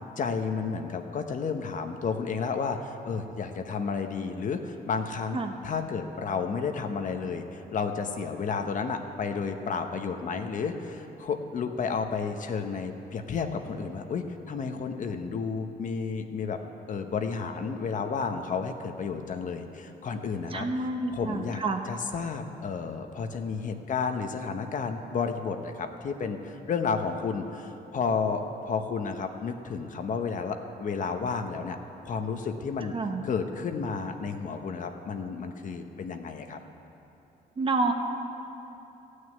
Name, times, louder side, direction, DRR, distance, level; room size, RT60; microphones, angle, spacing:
voice 1, 0.2-16.6 16.9-20.7 21.1-31.8 32.1-32.9 33.2-36.6, left 5 dB, 50° left, 6 dB, 0.9 m, -32 dB
voice 2, 20.5-21.8 32.9-33.2 37.6-37.9, right 3 dB, 35° right, 4 dB, 1.1 m, -28 dB
14.5 x 6.4 x 9.2 m, 2.9 s
cardioid pair, 115°, 16 cm